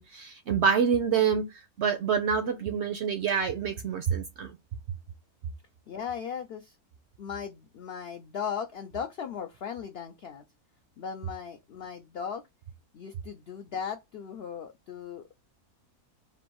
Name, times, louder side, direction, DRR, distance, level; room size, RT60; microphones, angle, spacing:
voice 1, 0.0-1.4 1.8-4.5, right 7 dB, 65° right, 0.7 m, -26 dB
voice 2, 5.9-6.8 7.2-10.4 11.0-12.4 12.9-15.3, left 7 dB, 80° left, 0.5 m, -37 dB
3.4 x 2.5 x 4.5 m
omnidirectional pair, 1.6 m